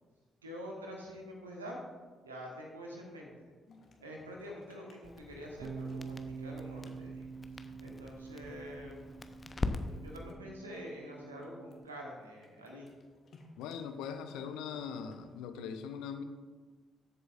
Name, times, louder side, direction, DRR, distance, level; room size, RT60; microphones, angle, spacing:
voice 1, 0.4-1.8 2.2-3.5 4.0-7.3 7.8-9.0 9.7-12.9, equal, 80° right, -1 dB, 1.3 m, -46 dB
sound 1, 3.7-15.4, left 2 dB, 50° left, 1.3 m, -61 dB
Crackle, 5.0-10.3, left 3 dB, 30° left, 0.7 m, -42 dB
Bass guitar, 5.6-11.9, right 5 dB, 50° right, 0.4 m, -46 dB
voice 2, 13.6-16.2, left 7 dB, 65° left, 8 dB, 0.6 m, -41 dB
13.5 x 7.8 x 2.5 m, 1.4 s
figure-of-eight pair, 40°, 0 cm